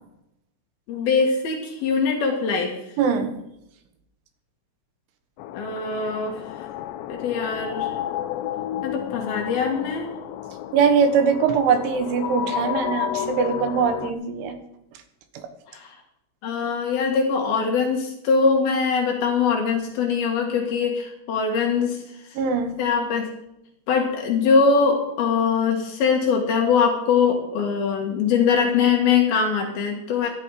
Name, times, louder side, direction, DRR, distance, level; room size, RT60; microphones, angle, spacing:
voice 1, 0.9-2.7 5.5-6.4 7.1-7.9 8.8-10.1 15.7-15.9 16.4-22.0 22.8-23.3 23.9-30.3, left 5 dB, 60° left, 2 dB, 3.2 m, -22 dB
voice 2, 3.0-3.4 10.7-14.6 15.4-15.5 22.4-22.7, right 6 dB, 80° right, 8 dB, 3.7 m, -21 dB
sound 1, 5.4-14.1, left 11 dB, 80° left, 2.7 m, -31 dB
15.5 x 11.0 x 4.9 m, 0.82 s
omnidirectional pair, 5.6 m